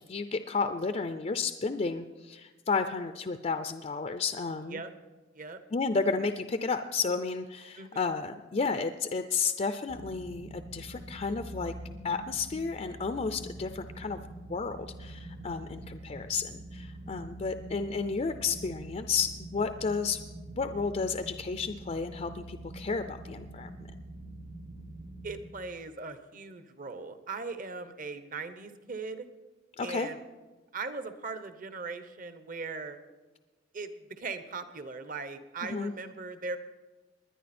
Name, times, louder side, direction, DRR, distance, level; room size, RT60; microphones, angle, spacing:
voice 1, 0.0-4.8 5.7-11.7 12.0-14.2 14.5-20.2 20.6-23.7 29.8-30.1 35.7-35.9, left 4 dB, 35° left, 8 dB, 0.4 m, -32 dB
voice 2, 7.8-8.1 25.2-29.3 29.8-30.2 30.7-33.0 33.7-36.6, right 4 dB, 45° right, 10 dB, 0.9 m, -39 dB
sound 1, 9.9-25.4, right 1 dB, 90° right, 3.7 m, -45 dB
20.5 x 10.5 x 4.3 m, 1.2 s
head